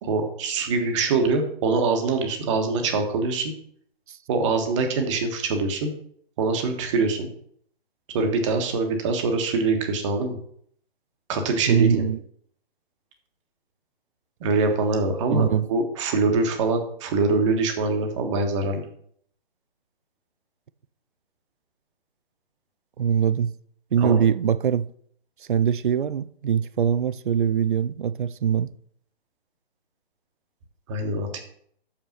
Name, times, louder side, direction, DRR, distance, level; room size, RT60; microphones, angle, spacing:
voice 1, 0.0-3.5 4.3-5.9 6.4-7.3 8.1-10.4 11.3-12.1 14.4-18.8 24.0-24.2 30.9-31.4, right 3 dB, 30° right, 1.4 m, -24 dB
voice 2, 11.7-12.2 15.3-15.7 23.0-23.5 23.9-24.9 25.5-28.7, right 8 dB, 55° right, 0.5 m, -22 dB
6.7 x 5.6 x 5.9 m
figure-of-eight pair, 130°, 31 cm